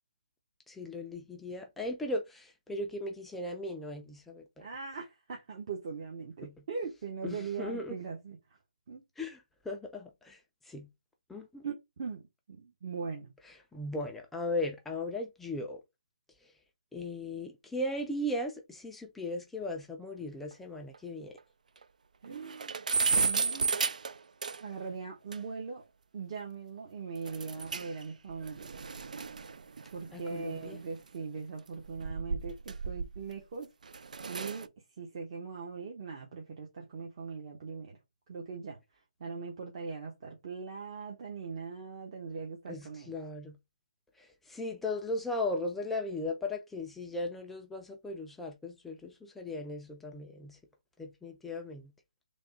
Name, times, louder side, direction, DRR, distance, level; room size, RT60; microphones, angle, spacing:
voice 1, 0.7-4.4 6.4-6.5 7.2-8.0 9.2-10.4 10.7-10.9 11.3-11.6 13.7-15.8 16.9-21.3 30.1-30.8 42.7-43.5 44.2-50.6 51.0-51.8, left 1 dB, 5° left, 0.3 m, -37 dB
voice 2, 4.6-8.4 8.9-9.0 11.6-13.3 22.2-23.8 24.6-25.8 26.1-28.8 29.9-33.7 34.3-34.7 35.0-38.0 38.3-38.8 39.2-43.1, right 5 dB, 40° right, 0.8 m, -40 dB
sound 1, 20.5-20.6 20.9-21.0 21.4-21.5 21.8-21.9 22.2-24.8 25.3-25.4 27.3-28.0 28.3-31.0 31.7-33.4 33.8-34.7, right 5 dB, 75° right, 0.3 m, -34 dB
3.4 x 2.1 x 3.9 m
hypercardioid pair, 155°, 4 cm